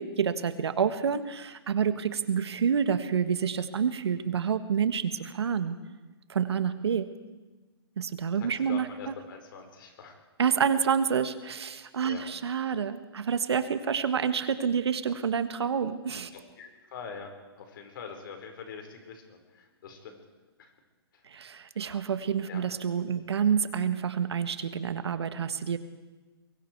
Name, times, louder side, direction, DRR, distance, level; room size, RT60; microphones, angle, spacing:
voice 1, 0.0-5.8 6.3-7.1 8.0-8.9 10.4-16.3 21.3-25.8, right 7 dB, 80° right, 10 dB, 1.6 m, -28 dB
voice 2, 8.4-10.2 11.7-12.2 16.6-17.3 17.6-20.2 20.6-20.7 21.1-21.2 22.5-22.6, left 6 dB, 55° left, 4 dB, 4.9 m, -44 dB
24.5 x 22.5 x 4.7 m, 1.2 s
hypercardioid pair, 145°, 14 cm